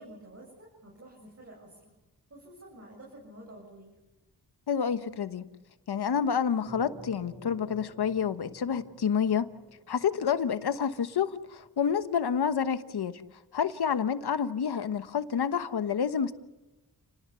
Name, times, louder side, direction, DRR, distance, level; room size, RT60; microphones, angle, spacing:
voice 1, 0.0-1.9 2.3-4.0, right 1 dB, 40° right, 7.5 m, -50 dB
voice 2, 4.7-5.4 5.9-9.5 9.9-13.2 13.5-16.3, left 7 dB, 75° left, 1.3 m, -28 dB
sound 1, 6.7-11.7, equal, 15° right, 5.4 m, -52 dB
30.0 x 20.0 x 6.9 m
wide cardioid pair, 90°, 39 cm